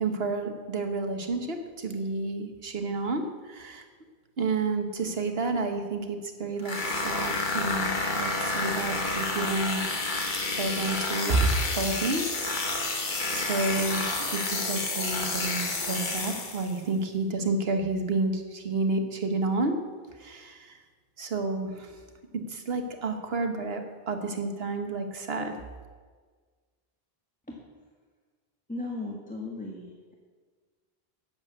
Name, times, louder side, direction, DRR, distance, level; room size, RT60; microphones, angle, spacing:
voice 1, 0.0-3.8 4.4-9.8 10.5-12.3 12.9-13.1 13.3-19.7 20.2-20.8 21.2-21.9 22.5-25.6, right 3 dB, 70° right, 5 dB, 1.5 m, -30 dB
sound 1, 6.6-16.8, left 3 dB, 50° left, 1.5 m, -30 dB
voice 2, 28.7-30.1, left 2 dB, 10° left, -2 dB, 1.4 m, -36 dB
12.0 x 7.5 x 8.3 m, 1.5 s
omnidirectional pair, 1.0 m